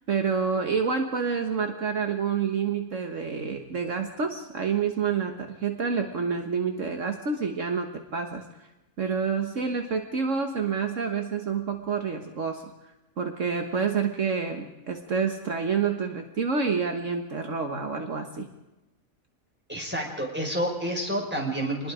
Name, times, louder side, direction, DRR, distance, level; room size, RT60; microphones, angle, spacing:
voice 1, 0.1-7.9 8.1-8.4 9.0-12.6 13.2-18.5, right 5 dB, 65° right, 4 dB, 1.7 m, -28 dB
voice 2, 19.7-21.9, right 1 dB, 5° right, 0 dB, 5.0 m, -29 dB
26.5 x 20.0 x 5.0 m, 1.0 s
omnidirectional pair, 1.4 m